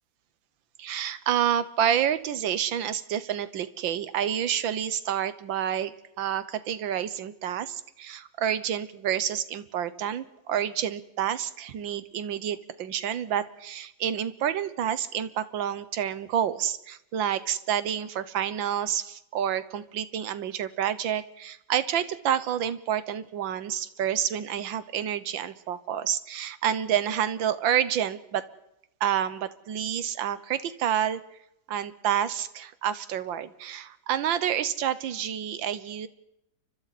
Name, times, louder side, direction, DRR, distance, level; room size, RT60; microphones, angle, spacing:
voice 1, 0.8-28.5 29.0-31.2 31.7-36.1, right 9 dB, 85° right, 14 dB, 1.7 m, -29 dB
29.5 x 24.5 x 4.2 m, 0.84 s
omnidirectional pair, 2.0 m